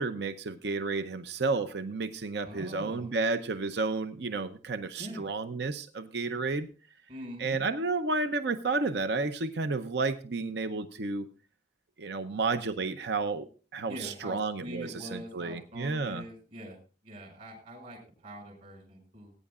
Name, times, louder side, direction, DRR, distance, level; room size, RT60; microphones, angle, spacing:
voice 1, 0.0-6.7 7.4-11.3 12.0-13.5 13.7-16.3, right 3 dB, 65° right, 9 dB, 0.7 m, -31 dB
voice 2, 2.4-3.1 5.0-5.2 7.1-7.6 13.8-16.8 17.0-19.3, equal, 50° right, 0 dB, 5.1 m, -43 dB
19.5 x 9.6 x 2.4 m, 0.36 s
head